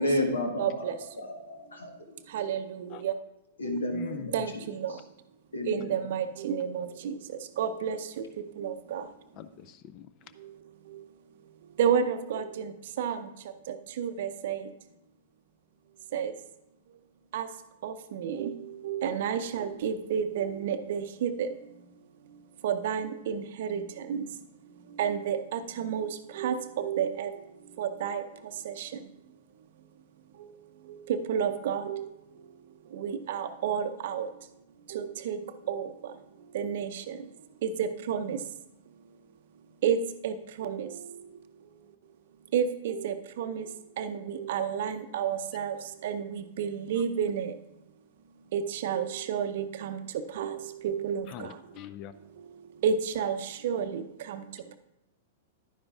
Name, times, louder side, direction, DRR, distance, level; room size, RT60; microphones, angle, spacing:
voice 1, 0.0-2.2 3.6-5.0 5.5-6.0, left 1 dB, 75° left, 3 dB, 1.4 m, -32 dB
voice 2, 0.6-1.0 2.3-3.1 3.6-3.8 4.3-4.9 5.7-7.2 7.6-8.2 8.6-9.1 10.9-11.0 11.8-12.7 13.0-13.3 13.7-14.7 16.1-16.3 17.3-17.5 17.8-21.5 22.6-24.2 25.0-27.3 27.8-28.2 28.6-28.9 30.9-32.1 32.9-34.3 34.9-35.4 35.7-35.9 36.5-37.2 37.6-38.4 39.8-41.1 42.5-43.7 44.0-45.8 46.0-47.5 48.5-50.0 50.3-51.5 52.8-54.4, right 7 dB, 55° right, 10 dB, 0.6 m, -31 dB
voice 3, 3.9-4.5 9.3-10.1 51.3-52.1, left 10 dB, 40° left, 13 dB, 0.5 m, -43 dB
11.0 x 9.9 x 2.4 m, 0.88 s
figure-of-eight pair, 100°, 0 cm